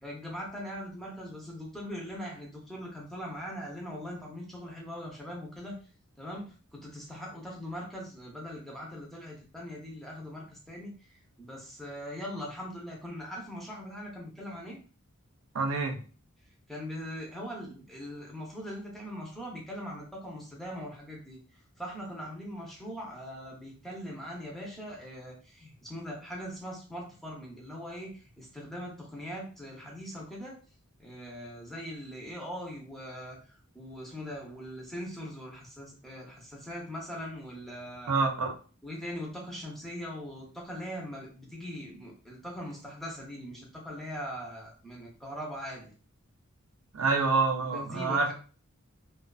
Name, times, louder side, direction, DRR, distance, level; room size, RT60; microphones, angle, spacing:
voice 1, 0.0-5.8 6.2-14.8 16.7-21.4 21.8-30.6 31.0-38.1 38.8-45.9 47.6-48.3, equal, ahead, -3 dB, 0.6 m, -41 dB
voice 2, 15.5-16.0 38.1-38.5 46.9-48.3, right 4 dB, 75° right, 3 dB, 0.5 m, -27 dB
2.4 x 2.4 x 2.2 m, 0.38 s
head